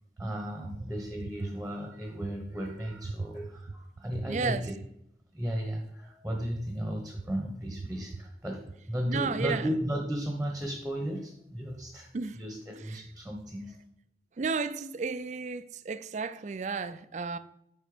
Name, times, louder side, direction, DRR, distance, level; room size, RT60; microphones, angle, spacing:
voice 1, 0.2-4.7 5.3-12.1 12.3-13.7, equal, 5° right, 1.1 m, -35 dB
voice 2, 4.1-4.7 8.1-8.2 9.0-9.8 12.1-12.4 12.7-13.1 14.4-17.4, right 4 dB, 40° right, 0.4 m, -33 dB
9.0 x 5.3 x 5.0 m
head